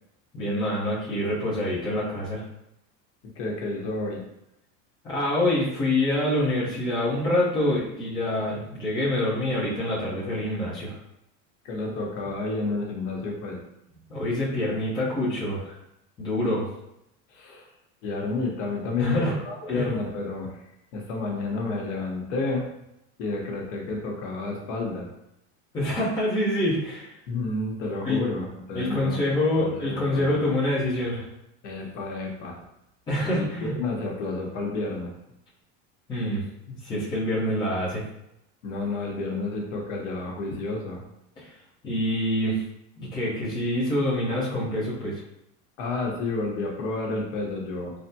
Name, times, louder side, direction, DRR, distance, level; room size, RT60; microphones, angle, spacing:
voice 1, 0.3-2.4 5.0-11.0 14.1-15.7 16.2-16.6 19.0-19.3 19.7-19.9 25.7-27.1 28.0-28.2 28.7-31.3 33.1-33.8 36.1-38.0 41.4-41.5 41.8-42.6 43.0-45.2, left 1 dB, 15° left, -8 dB, 0.6 m, -26 dB
voice 2, 3.4-4.2 11.6-13.6 17.3-17.7 18.0-20.5 20.9-22.7 23.2-25.1 27.3-29.2 29.6-30.4 31.6-32.6 33.2-35.1 38.6-41.0 45.8-47.9, left 3 dB, 80° left, 0 dB, 0.9 m, -30 dB
3.4 x 2.0 x 2.7 m, 0.83 s
cardioid pair, 175°, 35 cm